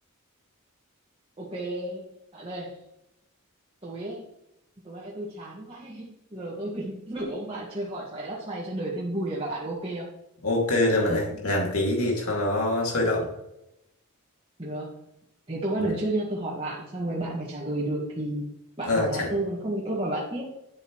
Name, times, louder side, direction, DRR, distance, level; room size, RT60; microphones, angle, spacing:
voice 1, 1.4-2.0 2.3-2.8 3.8-4.3 4.8-10.1 14.6-15.0 15.5-18.5 18.8-20.4, right 1 dB, 25° right, -6 dB, 1.9 m, -32 dB
voice 2, 10.4-13.3 18.9-19.3, left 1 dB, 70° left, -1 dB, 2.7 m, -24 dB
11.0 x 7.9 x 3.2 m, 0.85 s
head